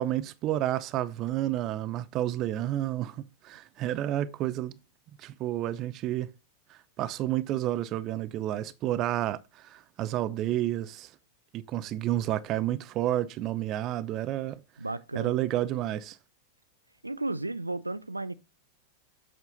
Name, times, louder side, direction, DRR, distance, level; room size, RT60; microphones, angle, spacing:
voice 1, 0.0-4.8 5.2-6.3 6.7-11.1 11.5-14.6 15.2-16.2, right 13 dB, 35° right, 0.6 m, -30 dB
voice 2, 14.8-15.5 17.0-18.4, right 2 dB, 85° right, 0.4 m, -34 dB
8.1 x 6.0 x 3.9 m
figure-of-eight pair, 90°, 0 cm